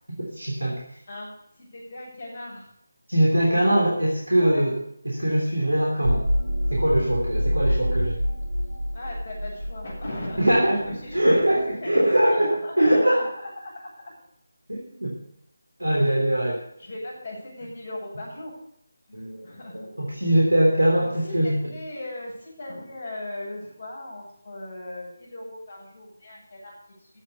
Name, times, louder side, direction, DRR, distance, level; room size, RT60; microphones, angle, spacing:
voice 1, 0.2-1.0 3.1-4.7 5.0-6.3 6.7-8.2 10.4-10.8 11.1-13.3 14.7-15.1 15.8-16.6 19.1-19.5 19.7-21.6, right 1 dB, 80° right, -2 dB, 3.3 m, -22 dB
voice 2, 1.1-2.7 4.3-4.6 8.9-14.1 15.9-16.2 16.8-18.5 19.1-19.8 21.0-27.1, left 1 dB, 45° left, -6 dB, 7.2 m, -38 dB
sound 1, 6.0-11.5, equal, 85° left, 3.3 m, -27 dB
15.0 x 7.4 x 6.9 m, 0.74 s
figure-of-eight pair, 160°, 0 cm